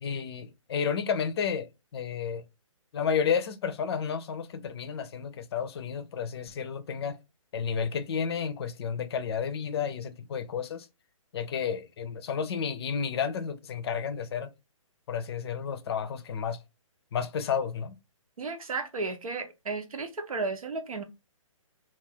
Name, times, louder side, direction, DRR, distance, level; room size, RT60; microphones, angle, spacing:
voice 1, 0.0-2.4 2.9-7.2 7.5-10.9 11.3-14.5 15.1-16.6 17.1-17.9, left 7 dB, 50° left, 0.5 m, -31 dB
voice 2, 18.4-21.0, right 3 dB, 85° right, 0.8 m, -33 dB
2.4 x 2.4 x 3.5 m
hypercardioid pair, 145°, 17 cm